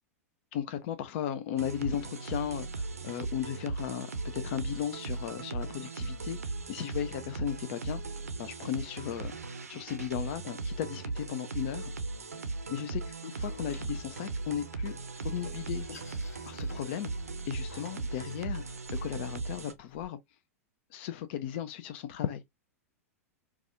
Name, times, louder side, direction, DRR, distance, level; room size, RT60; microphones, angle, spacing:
voice 1, 0.5-8.0 8.4-9.4 9.7-11.9 12.7-14.9 15.2-15.9 16.4-17.1 17.5-20.2 20.9-22.4, left 10 dB, 45° left, 0.4 m, -36 dB
sound 1, 1.6-19.7, right 3 dB, 75° right, 0.6 m, -38 dB
Door, 13.4-20.1, left 5 dB, 75° left, 0.9 m, -53 dB
4.7 x 2.3 x 2.4 m
figure-of-eight pair, 95°, 8 cm